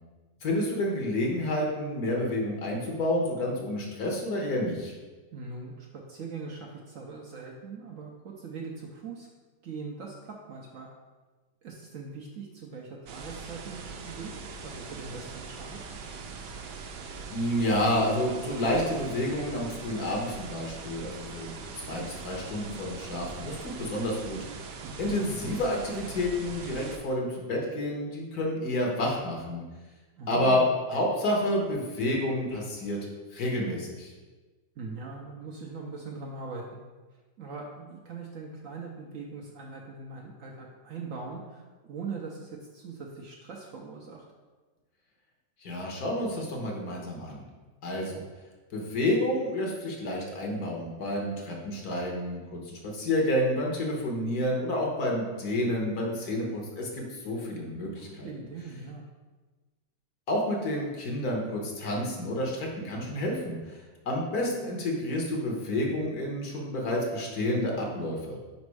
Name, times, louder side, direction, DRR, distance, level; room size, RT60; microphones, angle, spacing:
voice 1, 0.4-4.9 17.3-21.5 21.9-24.7 25.0-29.6 30.3-30.6 30.9-33.0 33.3-34.1 45.6-47.4 47.8-48.2 48.7-58.3 60.3-63.8 64.1-68.4, left 1 dB, 65° left, -1 dB, 1.5 m, -29 dB
voice 2, 5.3-9.3 9.6-10.9 11.6-14.3 14.6-15.8 24.8-25.2 30.2-30.7 34.8-36.8 37.4-44.3 58.0-59.0, right 4 dB, 65° right, 0 dB, 0.9 m, -41 dB
sound 1, 13.1-27.0, right 4 dB, 85° right, 1.3 m, -41 dB
5.2 x 4.1 x 4.7 m, 1.3 s
omnidirectional pair, 1.8 m